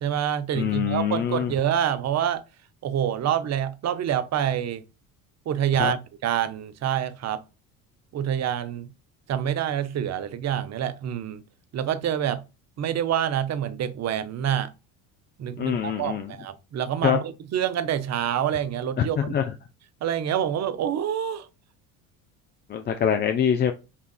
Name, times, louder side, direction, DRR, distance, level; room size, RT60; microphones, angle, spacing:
voice 1, 0.0-2.4 2.8-4.8 5.5-7.4 8.1-8.9 9.3-11.4 11.7-12.4 12.8-14.7 15.4-19.3 20.0-21.5, right 9 dB, 40° right, 0.6 m, -27 dB
voice 2, 0.5-1.5 5.8-5.9 15.6-16.3 17.0-17.2 19.0-19.5 22.7-23.7, left 8 dB, 25° left, 0.3 m, -24 dB
5.6 x 2.3 x 2.3 m
supercardioid pair, 80°, 43 cm